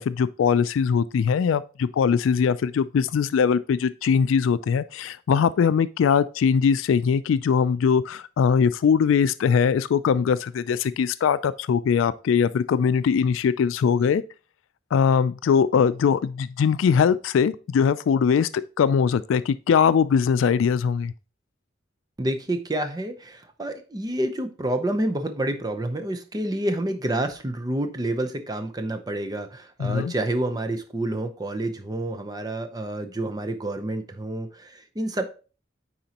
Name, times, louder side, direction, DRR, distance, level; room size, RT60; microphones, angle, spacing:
voice 1, 0.0-14.2 14.9-21.1 29.8-30.1, left 6 dB, 90° left, 0.3 m, -21 dB
voice 2, 22.2-35.3, right 1 dB, 20° right, 0.7 m, -28 dB
9.0 x 4.2 x 2.9 m
head